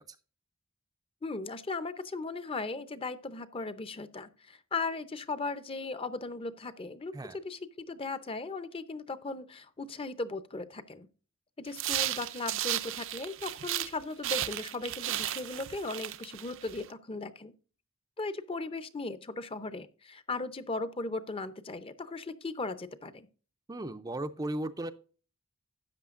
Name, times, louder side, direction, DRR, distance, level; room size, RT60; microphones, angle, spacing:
voice 1, 1.2-11.1 11.6-17.5 18.2-23.3, left 3 dB, 25° left, 0.6 m, -37 dB
sound 1, 11.7-13.9 14.2-16.8, right 13 dB, 65° right, 0.6 m, -34 dB
voice 2, 23.7-24.9, right 1 dB, 20° right, 0.4 m, -35 dB
12.5 x 8.6 x 2.5 m
head